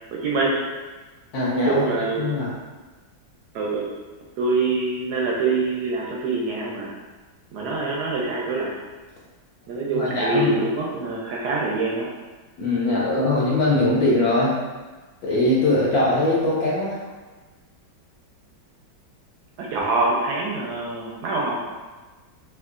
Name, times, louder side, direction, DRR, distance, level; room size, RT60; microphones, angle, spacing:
voice 1, 0.1-0.7 1.6-2.3 3.5-3.9 4.4-6.9 7.5-8.7 9.7-12.1 19.6-21.6, right 3 dB, 75° right, -3 dB, 0.9 m, -25 dB
voice 2, 1.3-1.9 2.2-2.5 7.8-7.9 9.9-10.5 12.6-14.6 15.2-17.0, left 2 dB, 75° left, -6 dB, 0.9 m, -21 dB
4.4 x 2.4 x 2.4 m, 1.3 s
omnidirectional pair, 2.2 m